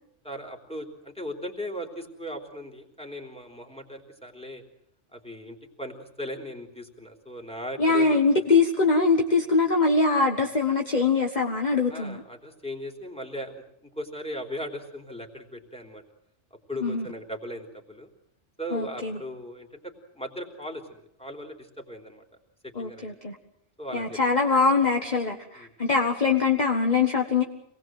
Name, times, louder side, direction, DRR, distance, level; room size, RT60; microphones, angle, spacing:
voice 1, 0.2-4.6 5.1-8.2 11.9-16.0 16.5-18.1 18.6-22.3 22.6-23.1 23.8-24.3 25.6-25.7, equal, 5° left, 2 dB, 3.6 m, -38 dB
voice 2, 7.8-12.2 16.8-17.1 18.7-19.2 22.7-23.3 23.9-27.4, left 4 dB, 35° left, 3 dB, 1.6 m, -23 dB
27.0 x 19.5 x 7.8 m, 0.74 s
omnidirectional pair, 1.2 m